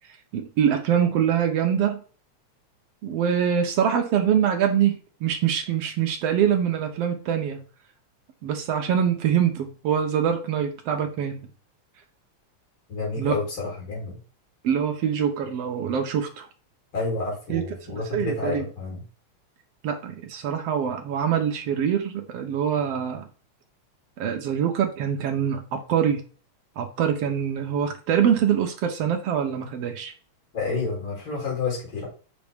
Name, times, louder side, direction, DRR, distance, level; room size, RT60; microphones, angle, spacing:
voice 1, 0.3-2.0 3.0-7.6 8.4-11.5 13.2-13.4 14.6-16.5 17.5-17.6 18.1-18.6 19.8-23.2 24.2-26.2 26.8-30.1, right 8 dB, 70° right, 5 dB, 1.6 m, -24 dB
voice 2, 12.9-14.2 16.9-19.0 30.5-32.1, left 3 dB, 45° left, -4 dB, 4.3 m, -29 dB
6.1 x 5.2 x 3.5 m, 0.38 s
omnidirectional pair, 3.3 m